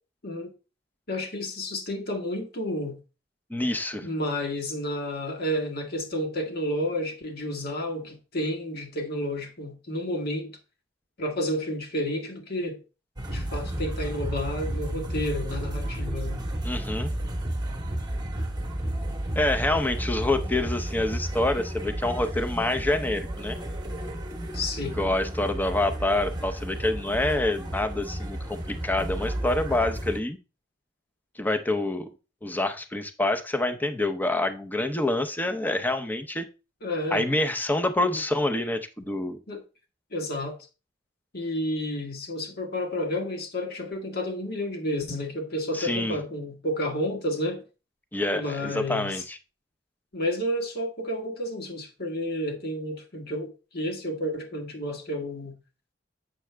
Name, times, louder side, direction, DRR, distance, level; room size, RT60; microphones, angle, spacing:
voice 1, 1.1-3.0 4.0-10.5 11.2-12.8 13.3-16.4 24.5-25.0 36.8-37.3 38.0-38.2 39.5-39.6 40.1-40.6 41.3-47.6 48.3-49.2 50.1-55.5, left 1 dB, 55° left, 1.6 m, -31 dB
voice 2, 3.5-4.1 16.6-17.1 19.3-23.6 24.9-30.4 31.4-32.1 32.4-36.5 37.1-39.4 45.7-46.2 48.1-49.4, left 2 dB, 10° left, 0.7 m, -27 dB
sound 1, 13.2-30.2, right 1 dB, 25° right, 1.1 m, -32 dB
7.5 x 6.2 x 3.4 m
head